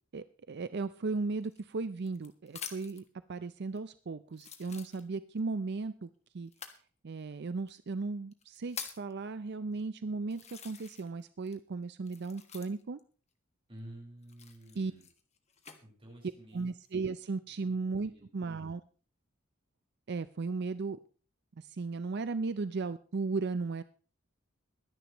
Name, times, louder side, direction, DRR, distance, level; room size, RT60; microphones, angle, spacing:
voice 1, 0.1-3.0 3.3-6.1 6.3-6.5 7.0-13.0 14.8-14.9 16.5-18.8 20.1-21.0 21.6-23.8, right 4 dB, 55° right, 13 dB, 0.5 m, -36 dB
sound 1, 1.4-3.1 3.8-3.9 4.3-5.4 6.5-6.8 7.7-7.8 8.3-9.1 9.8-9.9 10.3-11.2 11.5-13.0 14.2-15.8 16.4-16.9, left 7 dB, 35° left, 1.5 m, -46 dB
voice 2, 13.7-15.0 15.8-16.7 17.6-18.4, right 1 dB, 25° right, -2 dB, 5.0 m, -51 dB
22.0 x 10.5 x 3.0 m, 0.38 s
head